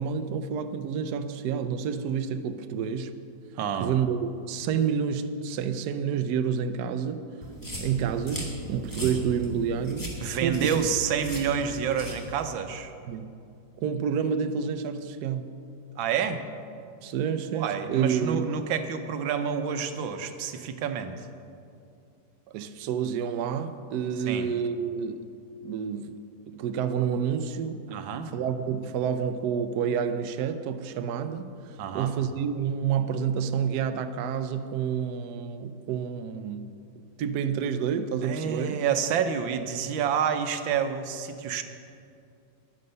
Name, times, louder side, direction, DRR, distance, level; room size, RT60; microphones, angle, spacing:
voice 1, 0.0-3.1 3.8-7.3 7.8-10.1 10.4-10.9 13.1-13.3 13.8-15.5 17.0-18.5 22.5-25.2 25.6-26.2 26.5-27.8 28.3-36.7 37.2-38.8, right 7 dB, 70° right, 9 dB, 1.1 m, -29 dB
voice 2, 3.6-3.9 10.2-12.9 16.0-16.4 17.5-21.1 24.3-24.5 27.9-28.3 31.8-32.1 38.2-41.6, right 7 dB, 85° right, 8 dB, 1.5 m, -28 dB
sound 1, 7.4-12.5, equal, 10° left, 1.7 m, -38 dB
10.5 x 9.4 x 6.6 m, 2.5 s
omnidirectional pair, 2.1 m